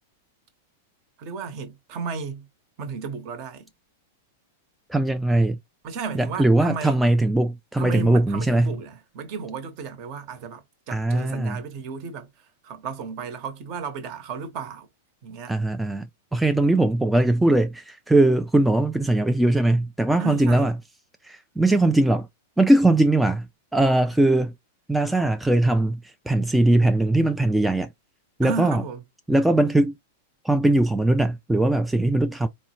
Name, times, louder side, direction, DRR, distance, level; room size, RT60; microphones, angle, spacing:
voice 1, 1.2-2.5 2.8-3.7 5.8-7.0 7.8-12.3 12.6-14.9 15.2-15.5 20.2-20.7 28.4-29.0, right 5 dB, 45° right, 1.0 m, -34 dB
voice 2, 4.9-5.6 6.1-8.8 10.9-11.6 15.5-20.8 21.2-22.3 22.6-23.5 23.7-24.5 24.9-27.9 28.4-28.8 29.3-30.0 30.4-32.5, right 2 dB, 5° right, 0.3 m, -20 dB
4.3 x 2.1 x 2.8 m
figure-of-eight pair, 95°, 0 cm